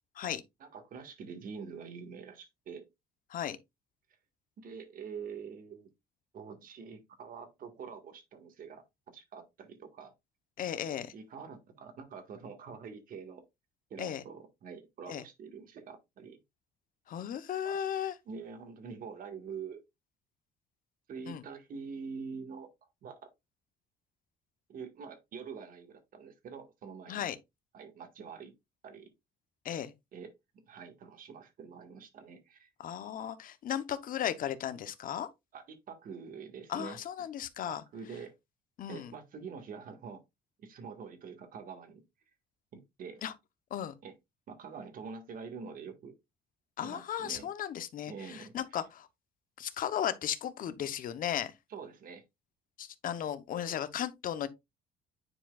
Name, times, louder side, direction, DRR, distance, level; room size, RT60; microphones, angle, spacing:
voice 1, 0.6-2.8 4.6-5.9 6.3-10.1 11.1-13.4 13.9-16.4 17.6-17.8 18.2-19.8 21.1-22.7 23.0-23.2 24.7-27.3 27.7-28.5 28.8-29.1 30.1-30.3 30.7-32.7 35.5-37.0 37.6-38.3 38.9-40.2 40.6-42.0 42.7-43.2 44.0-44.1 44.5-46.1 46.8-47.5 48.1-48.5 51.7-52.2, right 5 dB, 55° right, 1.7 m, -45 dB
voice 2, 10.6-11.1 14.0-14.2 15.1-15.2 17.1-18.1 21.3-21.4 27.1-27.4 29.6-29.9 32.8-35.3 36.7-37.8 38.8-39.1 43.2-43.3 43.7-43.9 46.8-49.1 49.6-51.5 52.8-54.5, left 10 dB, 55° left, 0.9 m, -35 dB
9.8 x 4.6 x 2.4 m
cardioid pair, 110°, 17 cm